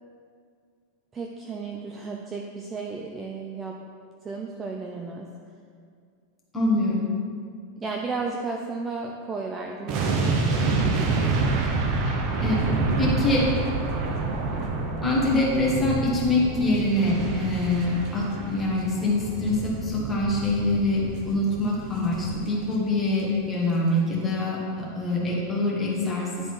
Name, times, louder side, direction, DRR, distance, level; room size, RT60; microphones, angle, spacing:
voice 1, 1.1-3.8 4.2-5.3 7.8-10.4, right 4 dB, 15° right, 1 dB, 0.4 m, -33 dB
voice 2, 6.5-7.1 12.4-12.6 13.0-13.5 15.0-26.5, left 2 dB, 10° left, -5 dB, 1.3 m, -24 dB
sound 1, 9.9-23.0 23.3-23.5, right 3 dB, 35° right, 0.7 m, -28 dB
9.9 x 3.9 x 4.7 m, 2.2 s
supercardioid pair, 170°, 0 cm